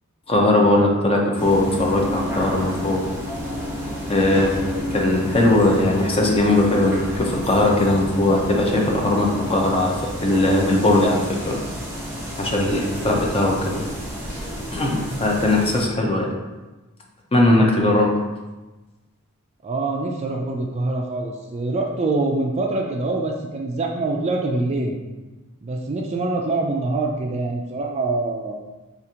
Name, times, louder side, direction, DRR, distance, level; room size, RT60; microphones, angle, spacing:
voice 1, 0.3-3.0 4.1-9.9 10.2-11.6 12.4-13.8 14.7-16.3 17.3-18.1, left 1 dB, 25° left, 0 dB, 0.6 m, -19 dB
sound 1, 1.4-15.8, equal, 10° right, 0.7 m, -31 dB
voice 2, 19.6-25.0 25.6-28.6, right 2 dB, 30° right, 1 dB, 0.4 m, -24 dB
4.9 x 2.4 x 2.8 m, 1.2 s
head